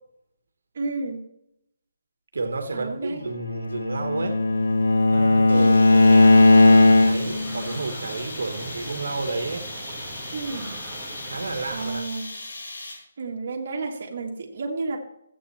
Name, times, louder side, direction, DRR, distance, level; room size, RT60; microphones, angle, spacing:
voice 1, 0.8-1.2 2.7-3.2 10.3-10.7 11.7-12.3 13.2-15.0, right 3 dB, 35° right, 0 dB, 1.9 m, -31 dB
voice 2, 2.3-4.4 5.1-9.7 11.2-12.1, right 3 dB, 70° right, 5 dB, 1.6 m, -31 dB
Bowed string instrument, 3.5-7.5, left 2 dB, 70° left, 1.2 m, -16 dB
sound 1, 5.5-13.2, left 2 dB, 85° left, 3.5 m, -38 dB
sound 2, 5.9-11.9, right 2 dB, ahead, 1.4 m, -39 dB
14.0 x 8.5 x 4.3 m, 0.80 s
hypercardioid pair, 180°, 0 cm